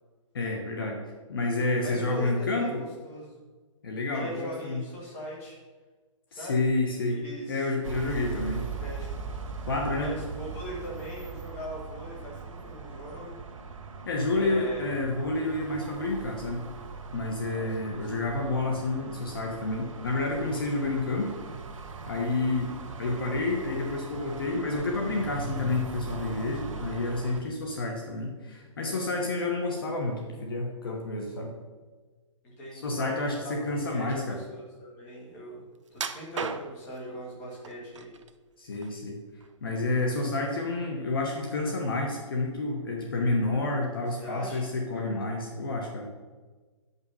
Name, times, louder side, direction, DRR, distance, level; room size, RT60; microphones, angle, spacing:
voice 1, 0.3-1.0 1.3-2.8 3.8-4.8 6.3-8.6 9.7-10.1 14.1-16.7 17.1-21.3 22.1-22.7 23.0-31.5 32.7-34.4 38.6-39.2 39.6-46.1, left 2 dB, 45° left, 1 dB, 1.2 m, -29 dB
voice 2, 1.8-3.3 4.1-5.6 6.3-6.7 7.1-7.7 8.8-9.2 10.0-13.4 14.3-14.9 17.5-18.4 28.8-29.3 32.4-33.0 33.4-33.5 33.9-35.6 35.9-38.1 44.2-44.7, equal, 10° left, -5 dB, 1.7 m, -40 dB
sound 1, 7.8-27.4, right 4 dB, 85° right, 1.4 m, -40 dB
sound 2, 35.9-37.0 37.6-38.3 38.7-39.6 40.0-40.2 40.7-40.8, right 5 dB, 65° right, 0.7 m, -36 dB
8.5 x 5.5 x 5.5 m, 1.3 s
hypercardioid pair, 175°, 17 cm